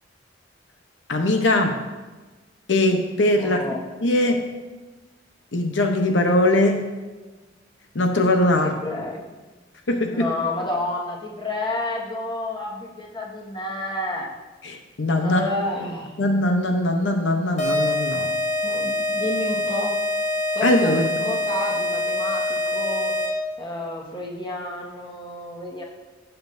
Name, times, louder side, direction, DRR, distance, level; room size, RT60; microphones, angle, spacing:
voice 1, 1.1-1.8 2.7-3.6 4.0-4.5 5.5-6.9 7.9-8.8 9.9-10.3 14.6-15.4 16.2-18.3 20.6-21.0, left 1 dB, 85° left, 4 dB, 0.9 m, -21 dB
voice 2, 3.4-3.8 8.6-9.2 10.1-14.3 15.2-16.1 18.6-19.9 20.5-23.2 23.6-25.8, left 2 dB, 25° left, -2 dB, 1.6 m, -30 dB
sound 1, 17.6-23.5, left 2 dB, 45° left, 2.1 m, -25 dB
16.0 x 7.0 x 2.7 m, 1.2 s
head